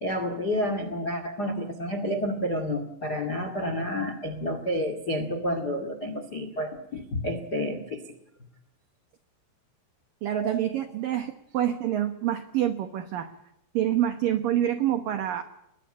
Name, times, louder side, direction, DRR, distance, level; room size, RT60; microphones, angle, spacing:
voice 1, 0.0-8.0 10.3-10.6, equal, 55° left, 9 dB, 1.0 m, -30 dB
voice 2, 10.2-13.3 13.7-15.4, right 11 dB, 80° right, 9 dB, 2.0 m, -27 dB
22.0 x 19.5 x 8.8 m, 0.80 s
omnidirectional pair, 5.9 m